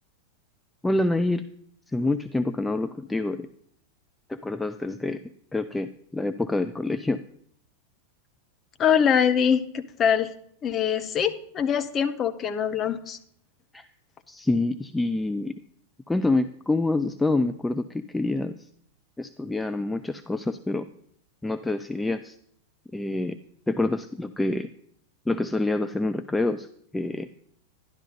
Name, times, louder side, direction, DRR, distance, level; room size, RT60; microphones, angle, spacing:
voice 1, 0.8-1.4 1.9-3.5 4.3-7.2 13.7-13.9 14.3-15.6 16.1-18.7 19.2-20.9 21.4-22.4 22.9-23.4 23.7-24.7 25.3-26.7 26.9-27.3, left 2 dB, 5° left, 9 dB, 0.4 m, -27 dB
voice 2, 8.8-10.3 10.6-13.2, left 8 dB, 25° left, 8 dB, 0.8 m, -23 dB
11.5 x 11.5 x 3.9 m, 0.64 s
figure-of-eight pair, 90°, 0 cm